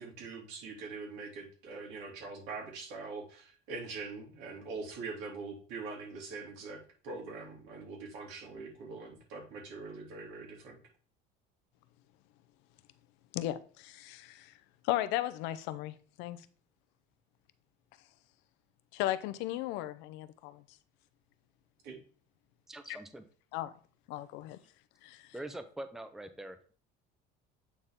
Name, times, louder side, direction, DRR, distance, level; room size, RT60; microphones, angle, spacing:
voice 1, 0.0-10.8 21.8-22.0, right 4 dB, 90° right, 2.9 m, -43 dB
voice 2, 13.3-14.5 14.8-16.4 18.9-20.6 23.5-23.7 24.1-24.6 25.0-25.3, left 14 dB, 80° left, 0.6 m, -36 dB
voice 3, 22.7-23.2 25.3-26.6, right 1 dB, ahead, 0.5 m, -43 dB
8.5 x 4.1 x 3.6 m
cardioid pair, 130°, 18 cm